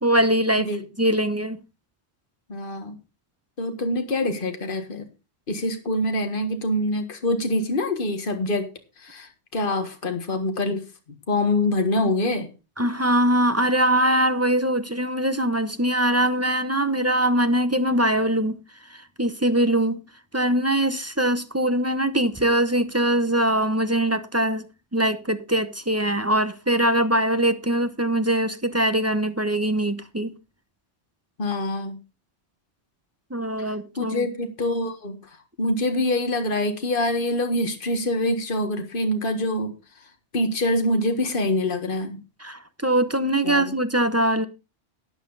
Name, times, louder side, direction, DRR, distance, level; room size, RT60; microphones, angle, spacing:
voice 1, 0.0-0.7 1.0-1.6 12.8-18.6 18.9-20.0 20.3-24.6 24.9-30.3 33.3-34.3 42.4-44.5, right 1 dB, 15° right, 0.8 m, -22 dB
voice 2, 2.5-3.0 3.6-5.1 5.5-8.7 9.0-10.8 11.3-12.5 31.4-32.0 33.6-39.7 40.3-42.2 43.4-43.8, left 1 dB, 50° left, 1.8 m, -25 dB
12.5 x 9.4 x 4.0 m
omnidirectional pair, 1.2 m